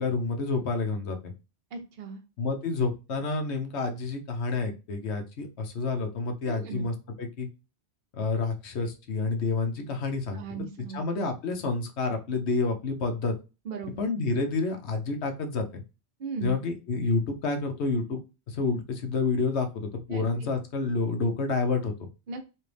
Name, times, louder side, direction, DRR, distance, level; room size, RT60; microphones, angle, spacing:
voice 1, 0.0-1.3 2.4-7.5 8.1-10.4 10.9-13.3 14.0-15.8 16.4-22.1, left 3 dB, 70° left, 5 dB, 1.1 m, -29 dB
voice 2, 1.7-2.2 6.5-6.9 10.3-11.0 13.7-14.0 16.2-16.6 20.1-20.2 22.3-22.5, right 4 dB, 55° right, 4 dB, 0.8 m, -37 dB
4.3 x 2.6 x 3.3 m, 0.29 s
omnidirectional pair, 1.2 m